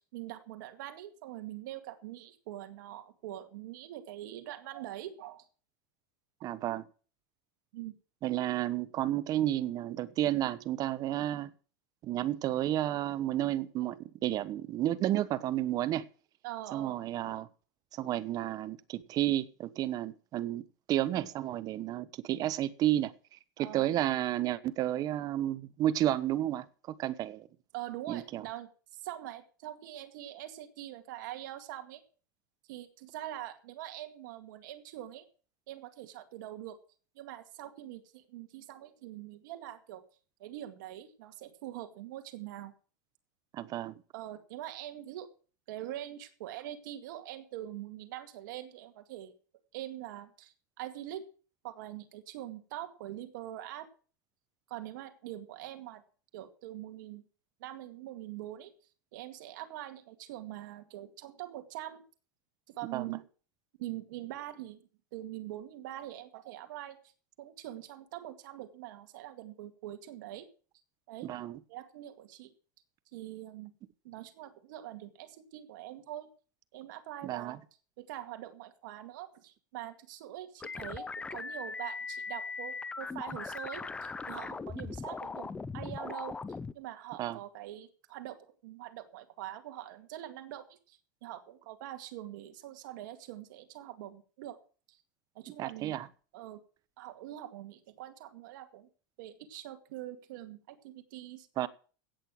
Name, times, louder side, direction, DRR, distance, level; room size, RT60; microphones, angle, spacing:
voice 1, 0.0-5.4 7.7-7.9 16.4-17.0 23.6-23.9 27.7-32.0 32.7-35.3 35.7-36.8 37.2-40.0 40.4-42.7 44.1-45.3 45.7-49.3 49.7-51.3 51.6-53.9 54.7-56.0 56.3-57.2 57.6-58.7 59.1-62.0 62.7-63.3 63.8-64.8 65.1-67.0 67.4-70.5 71.1-71.3 71.7-72.5 73.1-73.7 74.0-76.3 76.7-77.6 78.0-86.4 86.7-94.6 94.9-95.0 95.4-95.9 96.3-96.6 97.0-98.9 99.2-101.5, right 13 dB, 70° right, 2.1 m, -44 dB
voice 2, 6.4-6.8 8.2-11.5 12.0-16.1 16.7-17.5 17.9-23.1 23.6-26.7 27.0-27.5 28.1-28.4 43.5-44.0 62.9-63.2 71.2-71.6 77.2-77.6 87.2-87.4 95.6-96.1 101.6-101.7, right 13 dB, 35° right, 1.0 m, -31 dB
sound 1, 80.6-86.7, left 4 dB, 10° left, 0.6 m, -39 dB
17.0 x 6.7 x 7.5 m
supercardioid pair, 135°, 11 cm